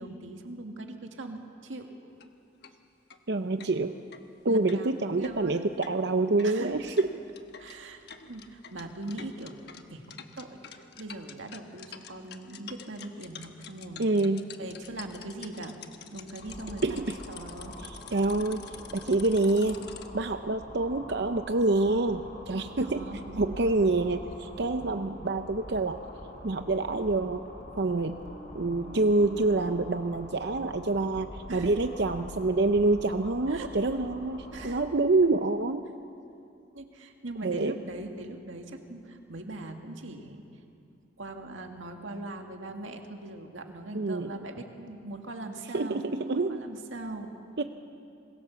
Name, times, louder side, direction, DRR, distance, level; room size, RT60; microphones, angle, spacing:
voice 1, 0.0-1.9 4.5-4.9 5.2-5.6 6.4-6.8 7.6-9.6 9.9-14.1 14.6-15.8 16.1-16.8 17.3-17.7 22.8-23.5 24.7-25.0 31.5-31.7 33.5-33.7 34.5-34.8 36.7-40.4 41.2-47.3, right 2 dB, 85° right, 4 dB, 2.0 m, -41 dB
sound 1, 2.1-2.3 2.6-2.7 3.1-3.2 3.6-20.1, left 7 dB, 55° left, 1.2 m, -48 dB
voice 2, 3.3-3.9 4.4-7.1 14.0-14.4 16.8-17.2 17.8-18.7 18.9-19.8 20.1-23.0 23.4-26.0 26.4-27.5 27.7-28.2 28.5-35.8 37.4-37.7 43.9-44.4 45.7-46.6 47.6-47.7, right 2 dB, 60° right, 8 dB, 0.7 m, -27 dB
sound 2, 16.4-34.8, left 1 dB, 40° left, 5.1 m, -45 dB
sound 3, 22.3-29.9, equal, 15° left, 1.4 m, -53 dB
25.5 x 22.5 x 7.0 m, 2.6 s
head